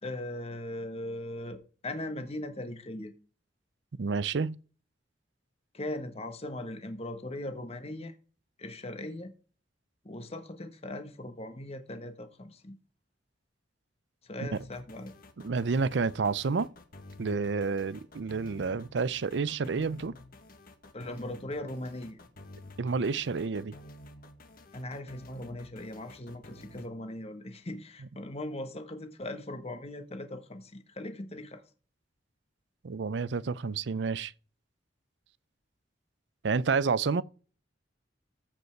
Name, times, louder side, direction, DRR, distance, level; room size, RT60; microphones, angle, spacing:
voice 1, 0.0-3.1 5.7-8.1 8.6-9.3 10.0-12.8 14.2-15.1 20.9-22.2 24.7-31.6, left 1 dB, 35° left, 1.3 m, -39 dB
voice 2, 3.9-4.6 14.4-14.5 15.4-16.7 17.2-20.1 22.8-23.8 32.8-34.3 36.4-37.2, right 4 dB, 70° right, 0.5 m, -29 dB
sound 1, 14.5-26.9, left 2 dB, 50° left, 1.4 m, -51 dB
14.5 x 5.4 x 4.5 m
head